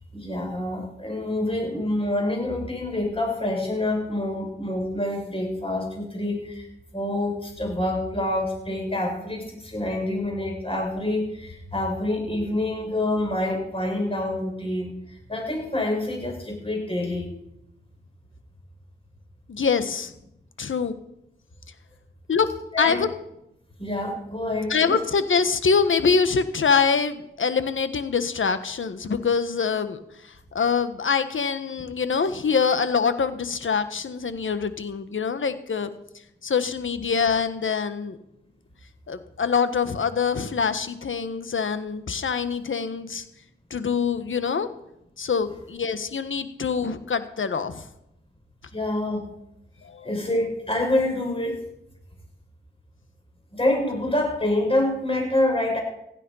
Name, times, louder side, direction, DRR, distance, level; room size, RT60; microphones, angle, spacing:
voice 1, 0.1-6.7 6.9-15.0 15.3-17.3 22.7-23.0 23.8-25.0 48.7-49.3 50.0-51.6 53.5-55.8, left 1 dB, 25° left, 1 dB, 6.9 m, -26 dB
voice 2, 19.5-20.1 20.6-21.0 22.3-22.5 22.8-23.1 24.7-35.9 36.4-38.2 39.1-43.2 43.7-44.7 45.2-47.8 49.8-50.1, left 5 dB, 75° left, 11 dB, 1.4 m, -24 dB
16.0 x 11.5 x 5.7 m, 0.81 s
cardioid pair, 50°, 21 cm